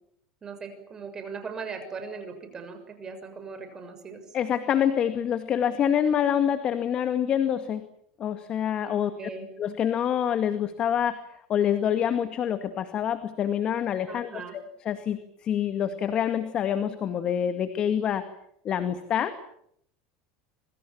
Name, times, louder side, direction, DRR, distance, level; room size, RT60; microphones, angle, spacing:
voice 1, 0.4-4.2 8.8-9.5 14.1-14.6, right 5 dB, 25° right, 8 dB, 6.6 m, -39 dB
voice 2, 4.3-7.8 8.2-9.1 9.6-11.2 11.5-18.2 18.6-19.3, left 9 dB, 40° left, 9 dB, 2.1 m, -26 dB
26.5 x 24.5 x 7.4 m, 0.70 s
supercardioid pair, 110°, 2 cm